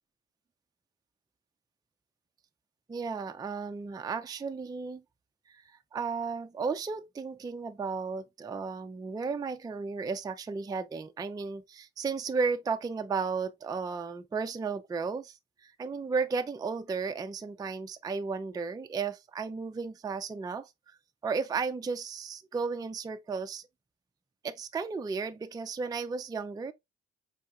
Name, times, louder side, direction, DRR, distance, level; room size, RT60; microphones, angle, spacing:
voice 1, 2.9-5.0 5.5-21.0 21.2-23.6 24.4-26.7, right 5 dB, 15° right, 0.4 m, -34 dB
4.4 x 2.9 x 2.3 m
hypercardioid pair, 50°, 30 cm